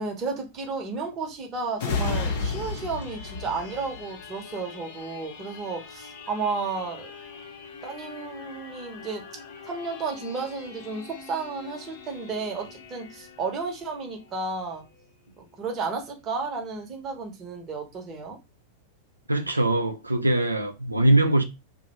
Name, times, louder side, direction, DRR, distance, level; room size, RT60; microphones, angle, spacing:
voice 1, 0.0-7.1 7.8-9.2 9.6-14.8 15.4-18.4, right 4 dB, 30° right, 0.9 m, -32 dB
sound 1, 1.8-15.1 15.5-15.7, left 4 dB, 55° left, 0.6 m, -37 dB
voice 2, 19.3-21.4, right 1 dB, 85° right, 0.4 m, -22 dB
2.6 x 2.1 x 2.9 m
figure-of-eight pair, 95°, 0 cm